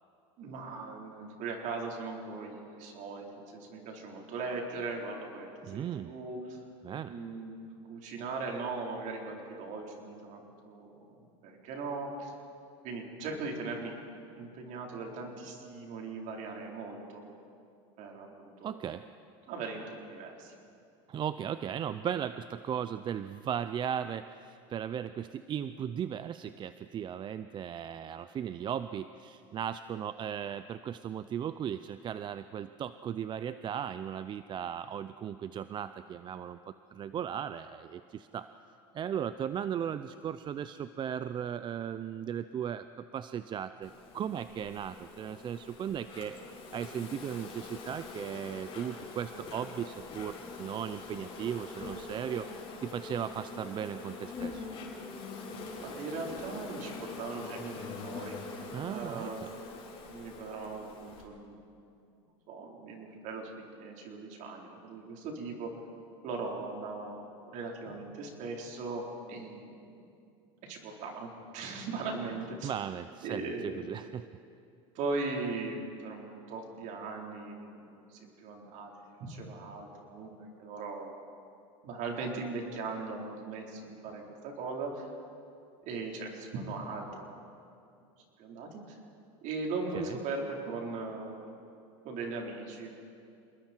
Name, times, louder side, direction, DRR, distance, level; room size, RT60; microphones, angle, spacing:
voice 1, 0.4-6.6 7.1-12.3 12.8-13.9 14.4-17.2 18.0-18.8 19.5-20.5 55.8-58.4 58.9-59.5 60.1-61.6 62.5-65.7 66.2-70.1 70.6-72.7 73.2-73.8 74.9-81.1 81.8-85.1 85.8-87.4 88.4-89.0 89.4-91.5 92.0-92.9, right 3 dB, 55° right, 0 dB, 4.3 m, -39 dB
voice 2, 5.7-6.1 6.8-7.1 18.6-19.0 21.1-38.5 38.9-46.4 46.7-54.7 58.7-59.5 72.6-74.3 89.9-90.2, right 9 dB, 30° right, 12 dB, 0.5 m, -37 dB
Insect, 43.8-61.2, left 4 dB, 35° left, 4.9 m, -44 dB
27.5 x 20.5 x 4.6 m, 2.5 s
supercardioid pair, 115°, 16 cm